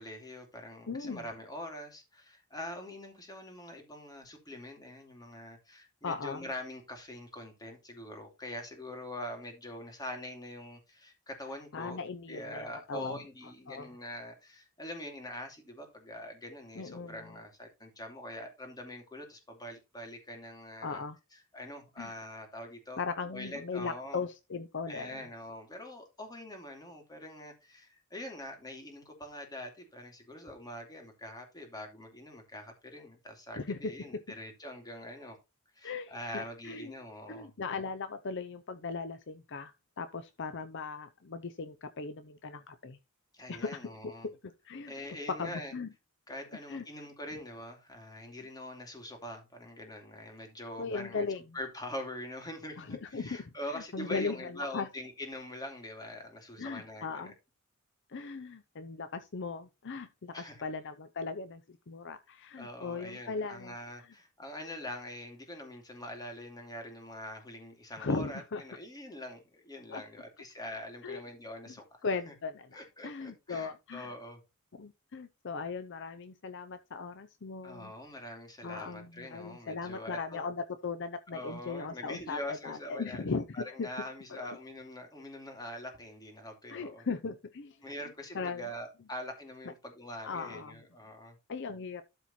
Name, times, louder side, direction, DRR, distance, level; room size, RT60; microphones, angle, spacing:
voice 1, 0.0-12.0 12.3-21.0 21.3-23.0 23.3-24.2 24.9-35.4 35.7-37.5 43.3-44.3 44.9-45.7 46.3-51.2 51.5-57.3 60.3-60.6 62.6-72.3 72.7-74.4 77.6-80.4 81.3-87.1 87.8-91.4, left 1 dB, 20° left, 2.7 m, -44 dB
voice 2, 0.9-1.3 6.0-6.5 11.7-13.2 13.7-13.9 16.8-17.2 20.8-21.2 22.0-22.1 23.0-25.2 33.6-34.2 35.8-36.9 37.3-43.0 43.5-44.4 44.6-44.9 45.3-45.9 46.7-46.8 50.8-51.4 52.8-53.4 53.7-54.9 56.6-57.3 58.1-64.1 68.0-68.6 69.9-70.0 71.0-71.2 72.0-74.1 74.7-77.9 78.6-83.9 84.3-84.5 86.7-87.9 88.3-88.7 90.2-90.8 91.5-92.0, left 4 dB, 55° left, 0.6 m, -38 dB
12.5 x 4.4 x 4.3 m
head